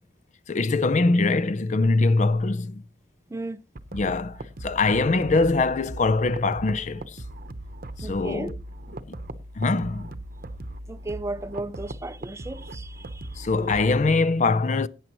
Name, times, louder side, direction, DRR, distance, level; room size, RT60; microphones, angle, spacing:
voice 1, 0.5-2.8 3.9-7.2 8.0-8.6 9.1-9.2 9.6-10.1 13.4-14.9, left 3 dB, 40° left, 0.5 m, -23 dB
sound 1, 3.8-14.2, right 1 dB, 50° right, 0.8 m, -39 dB
voice 2, 8.0-8.5 10.9-13.4, right 2 dB, 15° right, 0.5 m, -35 dB
17.0 x 9.0 x 3.0 m
head